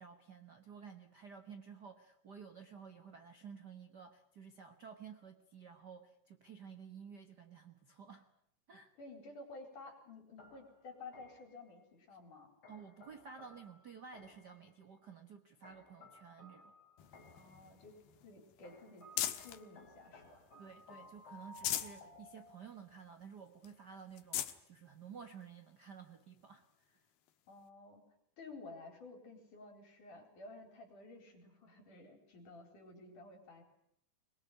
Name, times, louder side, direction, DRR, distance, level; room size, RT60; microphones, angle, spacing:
voice 1, 0.0-8.3 8.7-8.9 12.7-16.7 20.6-27.0, right 6 dB, 75° right, 7 dB, 0.9 m, -53 dB
voice 2, 9.0-12.5 17.3-20.4 27.5-28.1 28.4-33.6, left 3 dB, 55° left, 4 dB, 5.6 m, -53 dB
sound 1, 10.4-11.6 12.6-14.6 15.6-17.6 18.6-22.9, left 2 dB, 40° left, 5.3 m, -58 dB
sound 2, 17.0-19.6 20.2-20.9 21.3-22.0 22.5-22.6 22.9-23.0 23.6-23.7 24.1-24.6 25.4-25.5 27.3-27.4, left 12 dB, 85° left, 3.1 m, -41 dB
22.5 x 22.5 x 9.3 m, 0.70 s
omnidirectional pair, 4.3 m